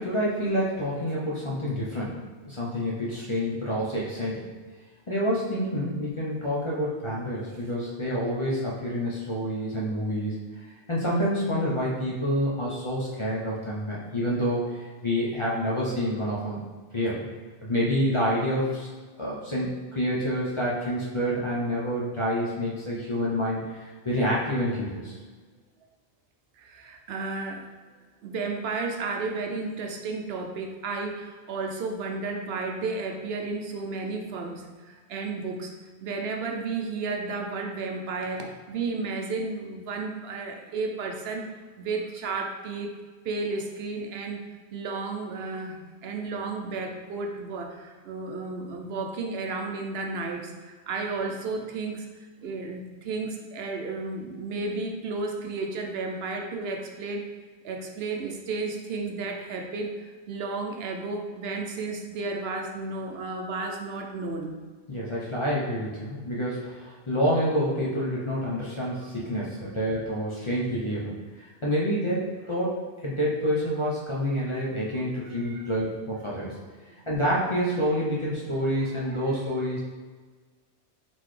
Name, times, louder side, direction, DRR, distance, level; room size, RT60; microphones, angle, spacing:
voice 1, 0.0-2.2 2.4-4.5 5.1-10.4 10.9-16.6 16.9-17.2 17.6-18.9 19.2-25.2 64.9-76.5 77.1-79.8, equal, 35° left, -6 dB, 0.6 m, -28 dB
voice 2, 26.6-27.7 28.2-35.7 36.0-41.5 41.8-42.9 43.2-44.4 44.7-52.0 52.4-57.2 57.6-59.9 60.3-64.6 75.4-75.7 78.8-79.4, right 3 dB, 70° right, 2 dB, 0.8 m, -33 dB
3.9 x 3.9 x 3.2 m, 1.4 s
omnidirectional pair, 1.1 m